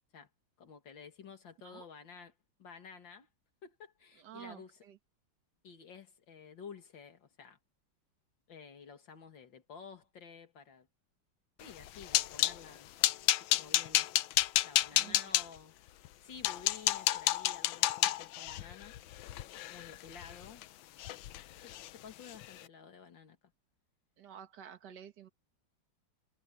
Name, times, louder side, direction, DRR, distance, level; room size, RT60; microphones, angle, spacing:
voice 1, 0.6-3.3 3.6-4.8 5.6-7.6 8.5-10.9 11.6-12.9 13.4-14.1 14.6-15.7 16.2-18.9 19.7-20.6 21.6-23.4, left 6 dB, 65° left, 2.7 m, -52 dB
voice 2, 4.2-5.0 14.9-15.3 24.2-25.3, right 9 dB, 60° right, 2.0 m, -51 dB
sound 1, 11.7-12.6 13.0-15.5 16.1-16.2 16.4-20.6 21.0-21.4 21.7-21.9 22.3-22.5, left 14 dB, 80° left, 1.4 m, -30 dB
omnidirectional pair, 2.2 m